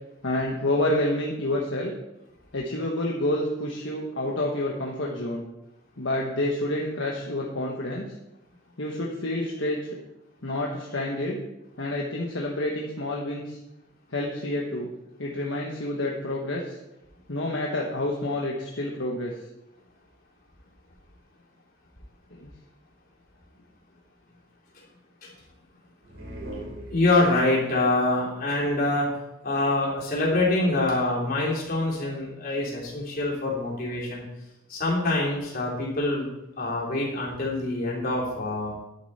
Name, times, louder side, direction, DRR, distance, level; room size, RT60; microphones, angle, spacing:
voice 1, 0.2-1.9 2.5-5.4 6.0-8.0 8.8-10.0 10.4-11.4 11.8-13.6 14.1-14.9 15.2-16.8 17.3-19.3 22.4-22.5, left 1 dB, 65° left, -2 dB, 1.4 m, -28 dB
sound 1, 26.0-27.6, right 1 dB, 90° right, 2.8 m, -39 dB
voice 2, 26.9-29.1 29.4-34.2 34.7-36.3 36.6-38.7, left 2 dB, 45° left, -4 dB, 3.7 m, -25 dB
10.5 x 9.7 x 4.3 m, 0.92 s
head